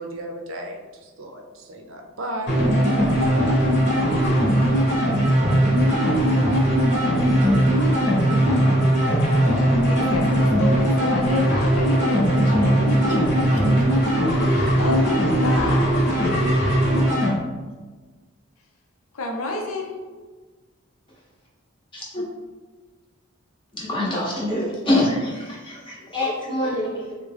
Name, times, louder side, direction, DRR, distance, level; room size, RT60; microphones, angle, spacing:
voice 1, 0.0-3.4, right 1 dB, 65° right, 2 dB, 0.5 m, -35 dB
sound 1, 2.5-17.3, equal, 50° left, 0.9 m, -19 dB
voice 2, 6.9-7.2 9.4-14.2 14.4-16.6 19.1-20.0 26.0-26.1 27.0-27.2, left 2 dB, 85° left, 0 dB, 0.7 m, -31 dB
voice 3, 23.7-27.1, left 1 dB, 25° left, -5 dB, 0.7 m, -25 dB
3.5 x 2.1 x 3.3 m, 1.3 s
head